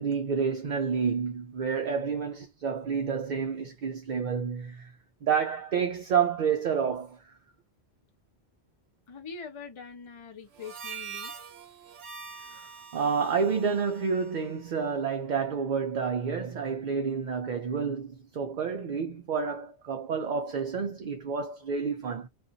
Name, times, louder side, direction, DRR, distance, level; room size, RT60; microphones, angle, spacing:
voice 1, 0.0-4.9 5.2-7.2 12.5-12.6 12.9-22.3, right 6 dB, 55° right, 0.6 m, -29 dB
voice 2, 9.1-11.3, left 5 dB, 35° left, 0.6 m, -43 dB
Harmonica, 10.5-15.2, right 6 dB, 80° right, 1.0 m, -44 dB
2.5 x 2.5 x 2.6 m
omnidirectional pair, 1.1 m